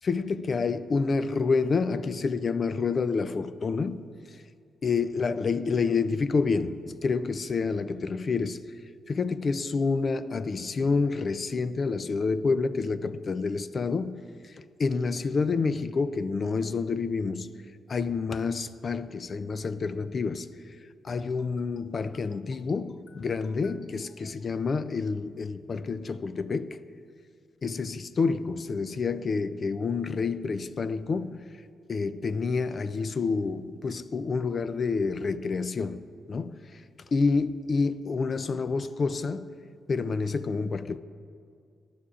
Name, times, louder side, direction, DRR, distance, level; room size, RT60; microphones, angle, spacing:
voice 1, 0.0-4.0 4.3-4.4 4.8-8.7 9.1-17.5 17.9-20.5 21.0-26.8 27.6-31.4 31.9-36.0 36.3-36.8 37.1-39.5 39.9-41.0, left 4 dB, 50° left, 0.4 m, -28 dB
18.0 x 11.5 x 2.5 m
cardioid pair, 70°, 0 cm